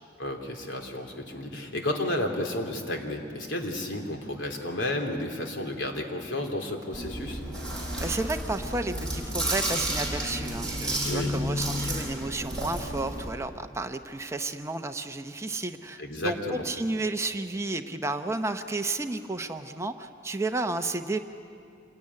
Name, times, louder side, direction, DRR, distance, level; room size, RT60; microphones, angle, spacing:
voice 1, 0.2-7.4 11.0-11.3 16.0-16.6, left 1 dB, 80° left, 3 dB, 3.2 m, -32 dB
Chewing mastication, 6.9-13.3, right 1 dB, 5° left, 5.6 m, -31 dB
voice 2, 8.0-21.2, right 2 dB, 15° right, 7 dB, 0.8 m, -32 dB
26.5 x 20.5 x 9.8 m, 2.5 s
head